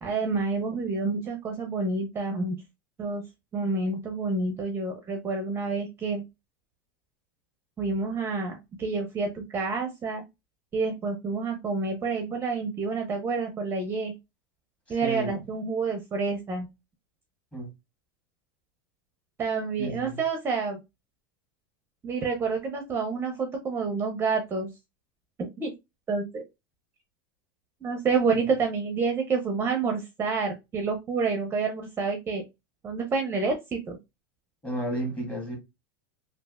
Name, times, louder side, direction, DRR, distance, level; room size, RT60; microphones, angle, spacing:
voice 1, 0.0-2.6 3.0-3.2 3.5-6.2 7.8-10.2 10.7-14.1 14.9-16.7 19.4-20.8 22.0-24.7 25.6-25.7 26.1-26.4 27.8-32.4 32.8-34.0, right 4 dB, 20° right, 0.6 m, -28 dB
voice 2, 14.9-15.3 17.5-17.7 19.8-20.2 34.6-35.6, right 1 dB, 10° left, 1.6 m, -32 dB
3.2 x 2.5 x 2.3 m
supercardioid pair, 120°, 11 cm